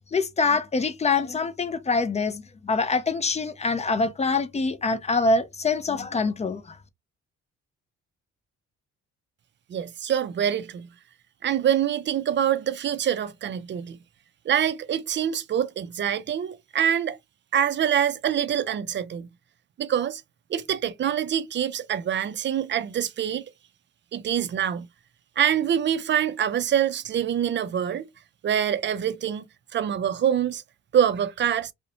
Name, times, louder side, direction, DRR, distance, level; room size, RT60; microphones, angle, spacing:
voice 1, 0.1-6.8, left 3 dB, 25° left, 0.4 m, -25 dB
voice 2, 9.7-10.9 11.4-14.0 14.5-17.2 17.5-19.3 19.8-20.2 20.5-23.4 24.1-24.9 25.4-28.1 28.4-29.4 29.7-30.6 30.9-31.7, right 9 dB, 40° right, 0.4 m, -25 dB
2.5 x 2.1 x 2.8 m
cardioid pair, 90°, 30 cm